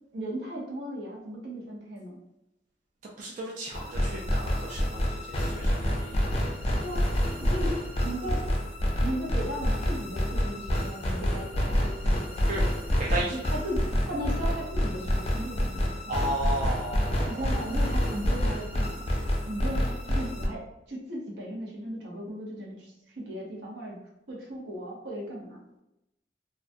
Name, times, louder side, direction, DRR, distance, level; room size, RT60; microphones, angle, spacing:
voice 1, 0.1-2.2 6.8-7.1 7.4-8.4 9.0-12.6 13.3-16.2 17.3-19.1 19.5-24.0 24.3-25.6, equal, 85° right, -3 dB, 0.8 m, -36 dB
voice 2, 3.2-6.3 12.5-12.6 13.0-13.4 16.1-17.4, right 1 dB, 45° right, -3 dB, 0.4 m, -34 dB
sound 1, 3.7-20.5, equal, 35° left, 0.4 m, -28 dB
2.3 x 2.1 x 2.6 m, 0.86 s
head